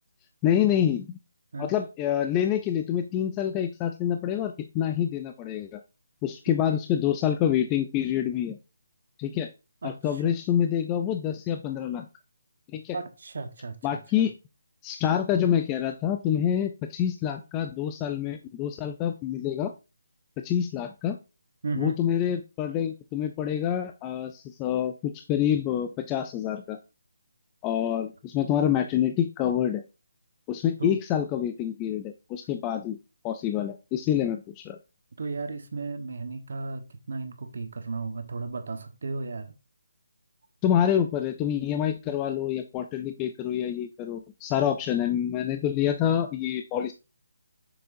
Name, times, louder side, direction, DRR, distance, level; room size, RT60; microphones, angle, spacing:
voice 1, 0.4-1.2 1.6-5.8 6.2-8.6 9.2-9.5 9.8-12.1 12.7-13.0 13.8-14.3 14.8-19.7 20.4-21.2 21.8-26.8 27.6-29.8 30.5-33.0 33.2-34.8 40.6-46.9, left 10 dB, 15° left, 0.3 m, -27 dB
voice 2, 9.8-10.3 12.9-14.3 21.6-22.0 30.8-31.0 35.2-39.5, right 3 dB, 60° right, 1.1 m, -35 dB
6.8 x 6.4 x 2.6 m
hypercardioid pair, 170°, 0 cm